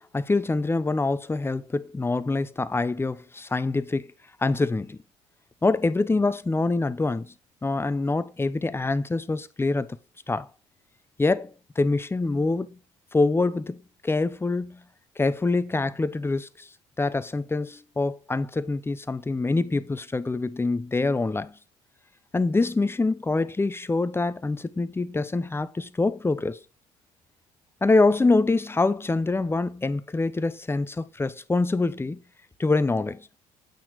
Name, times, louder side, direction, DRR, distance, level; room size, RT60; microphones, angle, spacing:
voice 1, 0.1-4.1 4.4-5.0 5.6-7.3 7.6-9.9 10.3-10.5 11.2-12.8 13.1-14.8 15.2-16.7 17.0-21.5 22.3-26.6 27.8-32.2 32.6-33.3, left 3 dB, 15° left, 0.8 m, -25 dB
8.6 x 5.9 x 4.7 m
supercardioid pair, 70°, 14 cm